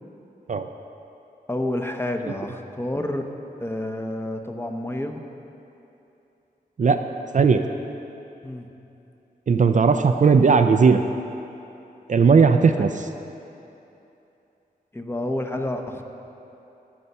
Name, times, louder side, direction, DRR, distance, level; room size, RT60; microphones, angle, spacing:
voice 1, 1.5-3.3 3.6-5.2 8.4-8.7 12.7-12.9 14.9-16.0, left 1 dB, 15° left, 4 dB, 0.8 m, -29 dB
voice 2, 9.5-11.0 12.1-12.9, right 5 dB, 50° right, 7 dB, 0.4 m, -17 dB
16.0 x 5.7 x 5.5 m, 2.9 s
wide cardioid pair, 80°, 16 cm